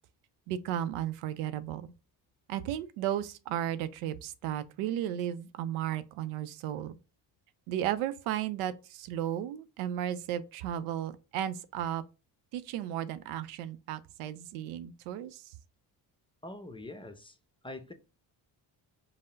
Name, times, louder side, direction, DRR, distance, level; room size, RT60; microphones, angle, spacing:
voice 1, 0.5-1.9 2.5-7.0 7.7-12.0 12.5-15.4, right 11 dB, 85° right, 0.5 m, -34 dB
voice 2, 16.4-17.4 17.6-17.9, left 2 dB, 10° left, 0.7 m, -43 dB
5.4 x 2.1 x 3.7 m
supercardioid pair, 55°, 49 cm